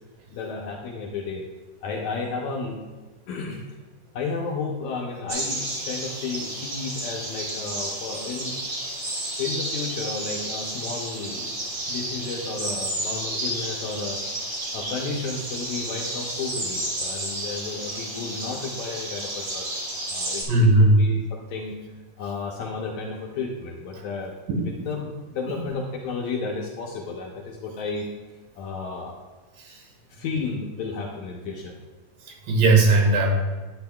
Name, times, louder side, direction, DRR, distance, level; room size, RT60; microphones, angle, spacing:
voice 1, 0.3-1.5 1.8-2.9 3.3-3.6 4.1-8.6 9.4-11.5 11.9-19.7 20.1-21.8 22.2-24.3 24.6-28.1 28.6-29.2 30.1-31.7, left 4 dB, 75° left, -1 dB, 1.7 m, -32 dB
sound 1, 5.3-20.4, right 1 dB, 35° right, 1.6 m, -31 dB
voice 2, 20.5-21.0 24.0-24.1 29.6-29.8 32.3-33.3, right 2 dB, 80° right, 1 dB, 3.0 m, -18 dB
11.0 x 8.8 x 2.3 m, 1.3 s
omnidirectional pair, 3.9 m